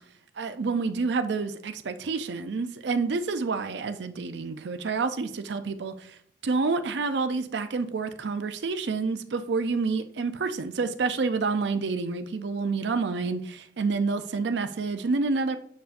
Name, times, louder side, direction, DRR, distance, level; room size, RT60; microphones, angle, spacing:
voice 1, 0.4-6.2 6.4-15.6, right 4 dB, 75° right, 10 dB, 0.5 m, -28 dB
6.9 x 6.6 x 2.5 m, 0.62 s
head